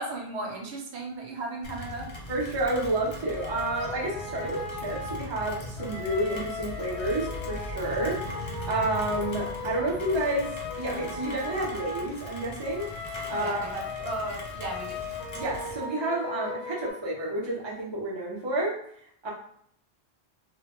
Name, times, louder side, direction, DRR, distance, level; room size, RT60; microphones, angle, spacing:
voice 1, 0.0-2.1 13.3-15.1, right 2 dB, 80° right, 0 dB, 0.9 m, -35 dB
Rain, 1.6-15.8, left 1 dB, 50° left, 0.3 m, -40 dB
voice 2, 2.3-13.6 15.3-18.7 19.2-19.3, right 1 dB, 30° right, -5 dB, 0.6 m, -30 dB
sound 1, 3.2-16.9, left 4 dB, 90° left, 0.9 m, -38 dB
2.1 x 2.1 x 2.9 m, 0.67 s
omnidirectional pair, 1.1 m